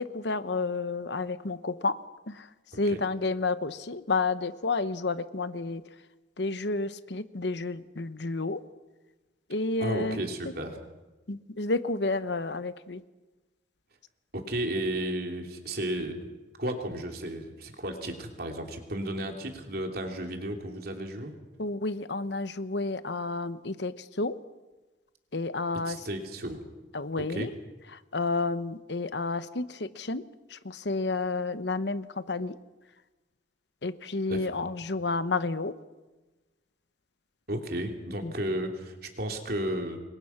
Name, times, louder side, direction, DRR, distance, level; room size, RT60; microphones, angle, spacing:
voice 1, 0.0-2.0 2.3-2.4 2.8-5.8 6.4-8.6 9.5-10.2 11.3-13.0 21.6-24.4 25.3-26.0 26.9-27.5 28.1-30.2 30.5-32.6 33.8-35.7 38.2-38.3, left 3 dB, 70° left, 13 dB, 1.0 m, -30 dB
voice 2, 2.7-3.0 9.8-10.8 14.3-16.3 16.6-21.3 25.7-26.6 27.2-27.5 34.3-34.5 37.5-40.0, right 1 dB, 55° right, 3 dB, 3.3 m, -33 dB
28.0 x 22.5 x 6.0 m, 1.2 s
head